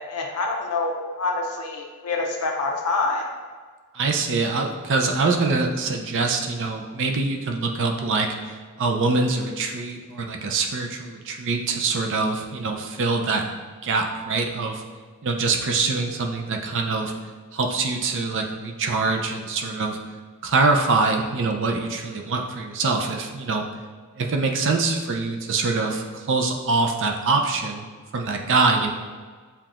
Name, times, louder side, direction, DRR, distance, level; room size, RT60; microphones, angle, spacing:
voice 1, 0.1-3.3, left 3 dB, 85° left, 1 dB, 0.6 m, -26 dB
voice 2, 3.9-13.5 13.8-14.8 15.2-17.1 17.5-20.0 20.4-23.6 24.2-27.9 28.1-28.9, right 3 dB, 60° right, 2 dB, 0.5 m, -24 dB
7.2 x 2.8 x 2.5 m, 1.5 s
head